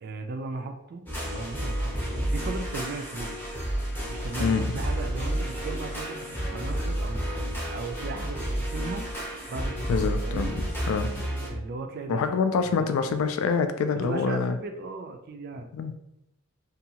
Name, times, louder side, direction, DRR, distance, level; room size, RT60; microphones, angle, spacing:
voice 1, 0.0-3.4 4.1-9.1 9.5-10.6 11.4-12.3 12.7-12.9 14.0-15.7, right 3 dB, 50° right, 5 dB, 0.3 m, -37 dB
sound 1, 1.1-11.5, right 1 dB, 10° left, 0.6 m, -31 dB
voice 2, 4.4-4.8 9.9-10.5 10.9-11.3 12.1-14.6 15.7-15.9, left 5 dB, 75° left, 8 dB, 0.3 m, -26 dB
2.6 x 2.3 x 2.8 m, 0.83 s
head